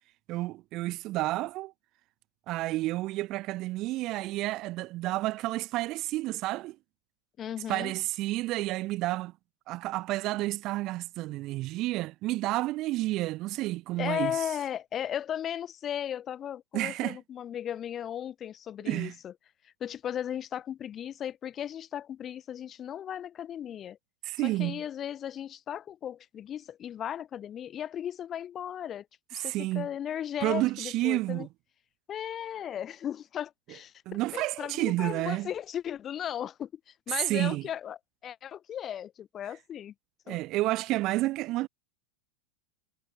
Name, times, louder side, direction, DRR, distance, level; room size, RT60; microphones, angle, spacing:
voice 1, 0.3-1.7 2.5-6.8 7.7-9.3 9.7-14.3 16.7-17.2 18.8-19.1 24.2-24.8 29.3-29.9 30.4-31.5 34.0-35.5 37.1-37.7 40.3-41.7, right 18 dB, 40° right, 1.5 m, -30 dB
voice 2, 7.4-7.9 14.0-19.3 19.8-24.0 24.4-29.1 29.3-31.5 32.1-38.0 38.2-39.9 40.3-40.4, left 10 dB, 25° left, 2.3 m, -36 dB
figure-of-eight pair, 90°, 0 cm